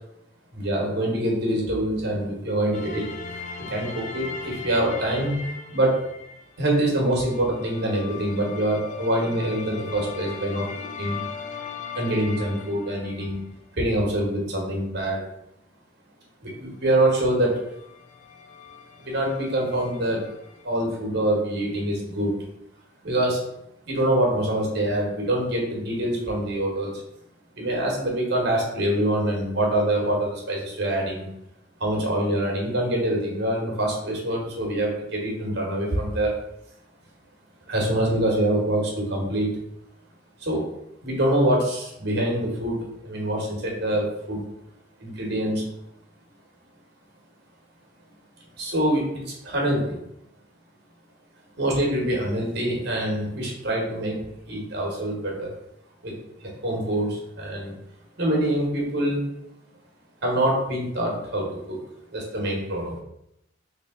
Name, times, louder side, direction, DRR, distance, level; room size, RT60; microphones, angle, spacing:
voice 1, 0.5-3.1 3.6-5.4 5.7-6.0 6.6-10.7 11.0-11.2 11.9-13.4 13.7-15.2 16.4-17.7 19.0-20.3 20.6-22.4 23.0-23.4 23.9-27.0 27.6-31.3 31.8-36.3 37.7-39.5 40.4-40.7 41.0-44.5 45.0-45.7 48.6-50.0 51.6-55.5 56.0-57.7 58.2-59.2 60.2-61.8 62.1-63.0, right 1 dB, 55° right, -1 dB, 1.2 m, -25 dB
sound 1, 2.7-13.4 17.2-17.3 17.5-20.6, left 5 dB, 40° left, 0.3 m, -39 dB
3.5 x 2.9 x 3.7 m, 0.80 s
head